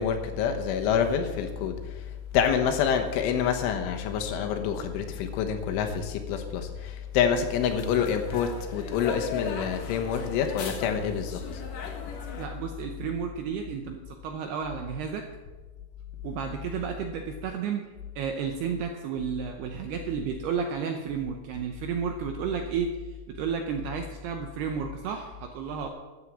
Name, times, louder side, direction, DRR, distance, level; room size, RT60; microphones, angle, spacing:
voice 1, 0.0-1.8 2.3-11.6, left 7 dB, 80° left, 5 dB, 3.6 m, -27 dB
sound 1, 7.3-12.5, left 5 dB, 60° left, 2.5 m, -39 dB
voice 2, 12.4-15.2 16.2-17.9 18.2-25.9, right 6 dB, 80° right, 4 dB, 2.4 m, -32 dB
12.5 x 8.3 x 7.3 m, 1.3 s
omnidirectional pair, 5.6 m